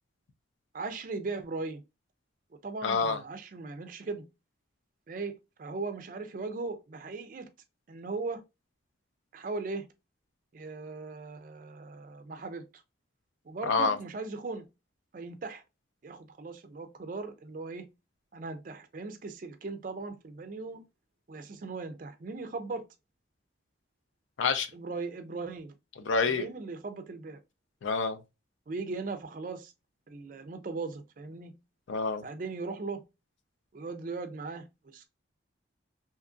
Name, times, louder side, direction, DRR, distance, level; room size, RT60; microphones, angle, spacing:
voice 1, 0.7-1.8 2.6-4.2 5.1-7.5 7.9-8.4 9.3-9.9 10.5-12.8 13.4-14.7 15.1-15.6 16.0-17.9 18.3-20.8 21.3-22.8 24.7-25.7 26.3-27.4 28.7-29.7 30.1-31.5 32.2-33.0 33.7-34.7 34.9-35.1, right 3 dB, 45° right, 0.4 m, -38 dB
voice 2, 2.8-3.2 13.6-14.0 24.4-24.7 26.0-26.5 27.8-28.2 31.9-32.2, left 4 dB, 80° left, 0.4 m, -27 dB
2.8 x 2.5 x 2.4 m
head